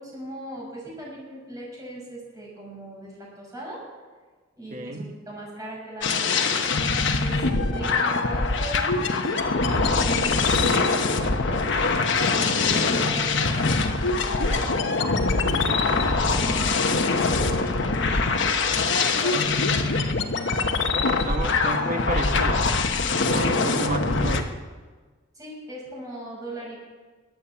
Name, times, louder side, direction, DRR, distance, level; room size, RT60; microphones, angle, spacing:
voice 1, 0.0-3.9 4.6-6.6 6.9-8.9 9.2-11.7 12.3-14.7 15.1-18.2 18.7-20.8 23.2-23.5 25.3-26.8, right 1 dB, 15° right, -4 dB, 6.4 m, -39 dB
voice 2, 4.7-5.1 20.9-22.7 23.3-24.5, right 1 dB, 40° right, 4 dB, 1.5 m, -31 dB
sound 1, 6.0-24.4, left 3 dB, 60° left, 1.1 m, -23 dB
22.5 x 8.6 x 7.2 m, 1.4 s
head